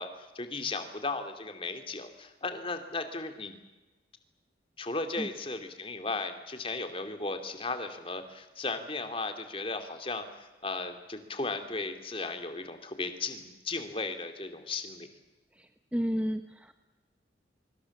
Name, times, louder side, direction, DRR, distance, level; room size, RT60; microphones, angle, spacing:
voice 1, 0.0-3.6 4.8-15.1, left 3 dB, 30° left, 7 dB, 2.6 m, -36 dB
voice 2, 15.5-16.7, equal, 5° right, 8 dB, 1.0 m, -32 dB
24.5 x 24.0 x 7.2 m, 1.1 s
head